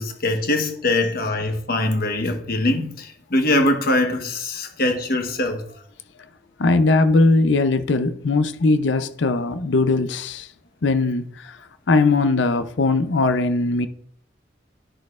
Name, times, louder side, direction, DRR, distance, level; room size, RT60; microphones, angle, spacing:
voice 1, 0.0-5.6, left 1 dB, 55° left, 1.1 m, -22 dB
voice 2, 6.6-10.5 10.8-11.5 11.9-13.9, left 3 dB, 75° left, 0.6 m, -19 dB
10.0 x 6.4 x 2.4 m
head